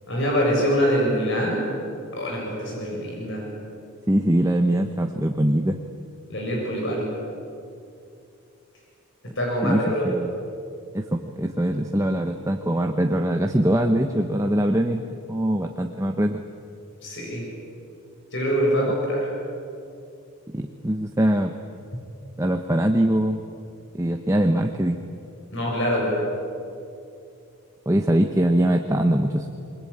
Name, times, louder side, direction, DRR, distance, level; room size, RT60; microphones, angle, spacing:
voice 1, 0.1-1.6 2.1-3.4 6.3-7.0 9.4-10.1 17.0-17.4 18.3-19.3 25.5-26.2, equal, 55° left, -2 dB, 7.5 m, -24 dB
voice 2, 4.1-5.8 9.6-10.3 10.9-16.4 20.5-21.5 22.4-23.4 23.9-25.0 27.9-29.5, right 1 dB, 15° right, 4 dB, 1.0 m, -22 dB
27.5 x 22.5 x 8.8 m, 2.5 s
head